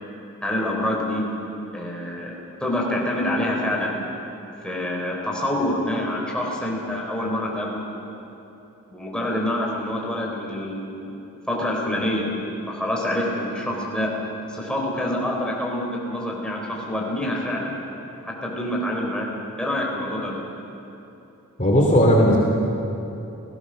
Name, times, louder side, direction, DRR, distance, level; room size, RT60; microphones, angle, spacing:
voice 1, 0.4-1.3 1.7-4.0 4.6-7.8 8.9-11.2 11.5-12.3 12.7-14.1 14.5-17.7 18.2-19.3 19.6-20.4, left 1 dB, 5° left, -2 dB, 3.9 m, -26 dB
voice 2, 21.6-22.4, equal, 35° left, -1 dB, 2.7 m, -16 dB
29.0 x 18.0 x 6.4 m, 3.0 s
head